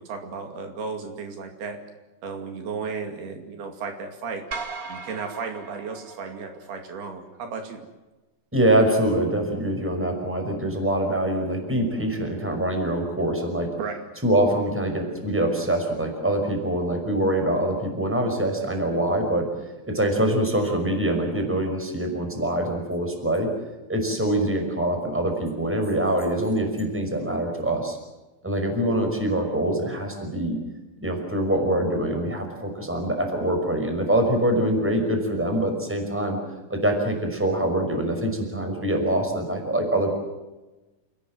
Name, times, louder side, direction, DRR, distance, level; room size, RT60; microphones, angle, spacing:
voice 1, 0.0-1.8 2.2-4.4 4.9-7.9 13.8-14.0, right 5 dB, 75° right, 5 dB, 4.4 m, -34 dB
sound 1, 4.5-6.9, right 4 dB, 50° right, 1.0 m, -37 dB
voice 2, 8.5-13.7 14.2-19.5 19.9-23.5 23.9-28.0 28.4-30.6 31.0-36.4 36.7-40.1, right 1 dB, 5° right, 4 dB, 5.2 m, -24 dB
29.0 x 19.5 x 7.8 m, 1.1 s
omnidirectional pair, 4.6 m